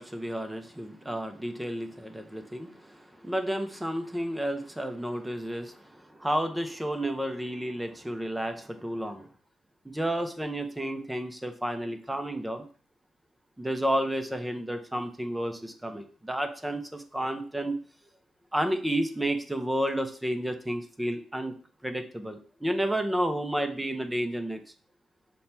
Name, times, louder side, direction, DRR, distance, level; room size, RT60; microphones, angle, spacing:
voice 1, 0.0-9.3 9.8-12.6 13.6-17.7 18.5-21.5 21.8-24.6, right 1 dB, 10° right, 6 dB, 0.6 m, -31 dB
5.5 x 2.3 x 4.3 m, 0.43 s
cardioid pair, 100°, 0 cm